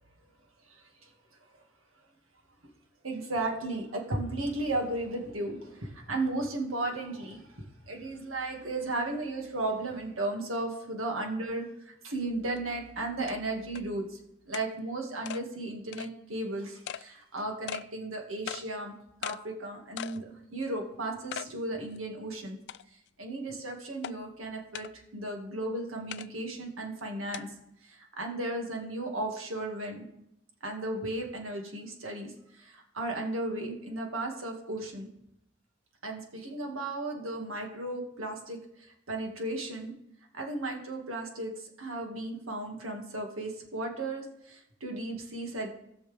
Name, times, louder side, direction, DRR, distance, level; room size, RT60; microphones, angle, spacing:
voice 1, 0.7-1.1 3.0-14.2 14.5-18.9 19.2-22.6 22.9-27.5 27.8-30.1 30.6-35.1 36.0-39.9 40.3-45.7, right 2 dB, 80° right, 2 dB, 2.0 m, -35 dB
sound 1, 12.6-12.7 13.3-13.4 13.8-13.9 14.5-14.7 15.3-15.4 15.9-16.1 16.9-17.0 17.7-17.9 18.5-18.6 19.2-19.4 20.0-20.2 20.6-20.7 21.3-21.5 22.0-22.1 22.7-23.1 24.0-24.1 24.7-24.9 26.1-26.3 27.3-27.4, left 10 dB, 60° left, 0.3 m, -38 dB
19.0 x 6.3 x 3.5 m, 0.79 s
head